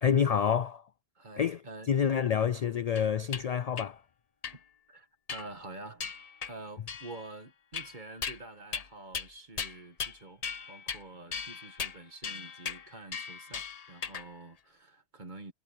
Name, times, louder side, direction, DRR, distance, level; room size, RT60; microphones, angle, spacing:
voice 1, 0.0-0.8 1.4-1.6 1.9-4.0, left 7 dB, 65° left, 0.3 m, -27 dB
voice 2, 1.2-1.9 4.5-4.6 4.9-6.2 6.5-15.5, right 2 dB, 40° right, 1.9 m, -47 dB
sound 1, 3.0-3.4 3.8-3.9 4.4-4.6 5.3-5.6 6.0-6.5 6.9-7.3 7.7-8.4 8.7-8.9 9.1-9.3 9.6-10.2 10.4-11.0 11.3-14.3, left 6 dB, 40° left, 0.7 m, -38 dB
omnidirectional pair, 1.2 m